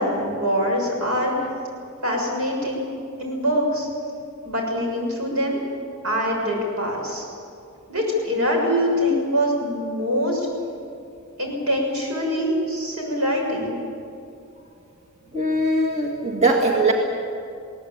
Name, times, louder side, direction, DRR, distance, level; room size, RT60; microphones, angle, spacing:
voice 1, 0.0-1.5 2.0-2.9 3.2-3.9 4.4-5.6 6.0-7.3 7.9-10.5 11.4-13.8, equal, 80° right, 0 dB, 7.0 m, -24 dB
voice 2, 15.3-16.9, right 2 dB, 30° right, 0 dB, 1.9 m, -20 dB
22.0 x 18.0 x 8.7 m, 2.5 s
head